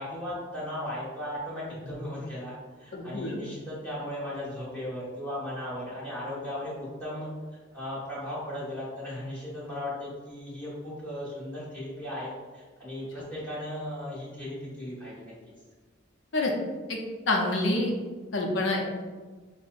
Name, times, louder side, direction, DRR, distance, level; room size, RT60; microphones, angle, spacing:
voice 1, 0.0-7.3 7.7-15.3, left 1 dB, 10° left, -10 dB, 1.4 m, -36 dB
voice 2, 2.9-3.4 16.3-16.5 16.9-17.0 17.3-17.9 18.3-18.8, left 2 dB, 70° left, 0 dB, 0.6 m, -26 dB
5.6 x 2.1 x 2.5 m, 1.4 s
head